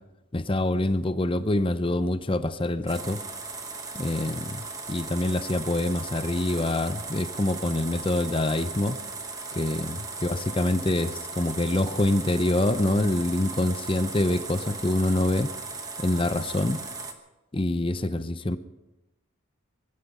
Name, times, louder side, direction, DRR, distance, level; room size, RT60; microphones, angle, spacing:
voice 1, 0.3-3.2 3.9-9.0 9.5-15.5 16.0-16.8 17.5-18.6, left 1 dB, 25° left, 12 dB, 0.6 m, -25 dB
sound 1, 2.9-17.1, right 4 dB, 15° right, 1.1 m, -37 dB
22.5 x 12.0 x 5.4 m, 1.0 s
head